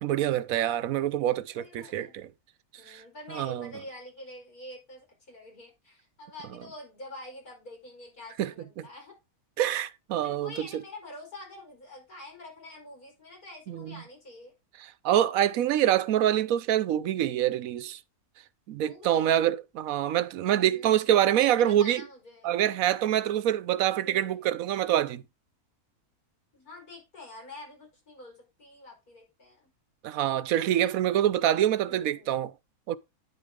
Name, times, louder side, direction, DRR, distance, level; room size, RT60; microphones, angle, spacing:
voice 1, 0.0-2.3 2.9-3.0 3.3-3.7 8.4-8.9 9.6-10.8 13.7-14.0 15.0-18.0 18.7-22.0 22.4-25.2 30.0-32.5 32.9-33.0, right 11 dB, 70° right, 1.0 m, -26 dB
voice 2, 1.5-2.1 2.8-9.1 10.2-14.5 18.8-19.4 20.6-22.6 24.0-24.5 26.5-29.7 31.4-32.3, left 2 dB, 85° left, 5.1 m, -47 dB
9.5 x 6.3 x 3.6 m
omnidirectional pair, 1.6 m